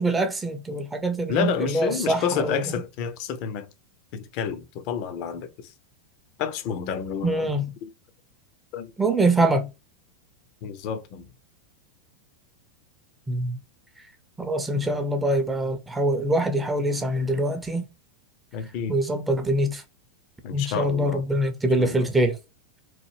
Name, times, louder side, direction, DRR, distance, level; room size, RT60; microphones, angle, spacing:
voice 1, 0.0-2.6 7.2-7.7 9.0-9.7 13.3-13.6 14.4-17.9 18.9-19.8 20.5-22.4, right 1 dB, 10° right, 0.5 m, -24 dB
voice 2, 1.3-3.7 4.1-5.7 6.4-7.5 7.8-7.9 8.7-8.9 10.6-11.3 18.5-19.0 20.4-21.2 21.8-22.1, left 7 dB, 45° left, 0.5 m, -29 dB
3.1 x 2.1 x 3.0 m
figure-of-eight pair, 90°, 0 cm